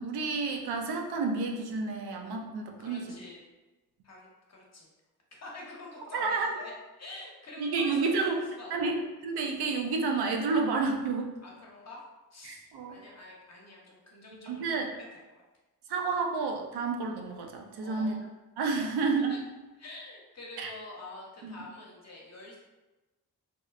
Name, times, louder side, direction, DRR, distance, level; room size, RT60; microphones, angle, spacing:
voice 1, 0.0-3.2 6.1-6.5 7.6-8.4 8.7-9.0 9.2-11.3 12.4-13.0 14.5-14.9 15.9-18.2 18.6-19.4 20.6-20.7 21.4-21.5, right 4 dB, 80° right, 2 dB, 0.5 m, -30 dB
voice 2, 2.8-3.4 4.0-4.9 5.3-6.7 7.0-9.0 11.4-12.0 12.3-12.6 12.9-14.9 15.3-15.4 17.8-18.2 19.3-19.4 19.8-22.6, left 2 dB, 45° left, -2 dB, 0.8 m, -46 dB
2.9 x 2.0 x 2.3 m, 1.1 s
cardioid pair, 60°, 39 cm